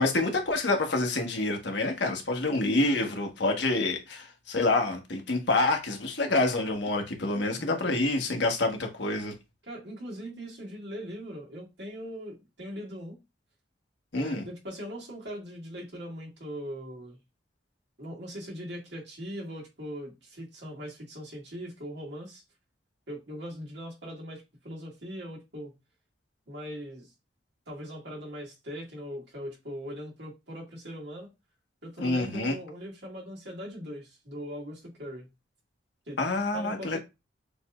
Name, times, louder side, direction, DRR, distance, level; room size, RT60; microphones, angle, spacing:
voice 1, 0.0-9.3 14.1-14.4 32.0-32.6 36.2-37.0, left 2 dB, 75° left, 1.2 m, -27 dB
voice 2, 9.7-13.2 14.1-17.2 18.0-22.4 23.1-25.7 26.5-27.1 27.7-31.3 31.8-35.3 36.1-36.2 36.5-37.0, equal, 70° right, 1.9 m, -40 dB
6.9 x 3.1 x 2.3 m
head